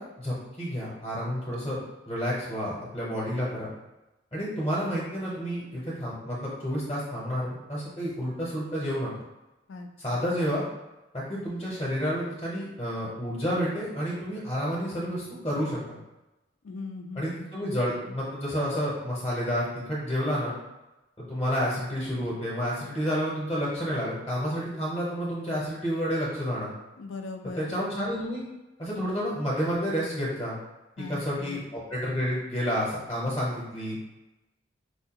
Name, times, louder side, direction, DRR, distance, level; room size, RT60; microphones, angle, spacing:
voice 1, 0.0-1.8 2.1-3.7 4.3-9.1 10.0-10.6 11.1-15.8 17.1-20.5 21.2-26.7 27.5-28.4 28.8-30.6 31.0-34.0, equal, 20° left, -6 dB, 0.7 m, -30 dB
voice 2, 9.7-10.2 16.6-17.5 27.0-27.7 31.0-31.6, left 3 dB, 85° left, 5 dB, 0.4 m, -39 dB
4.5 x 2.2 x 2.8 m, 1.0 s
head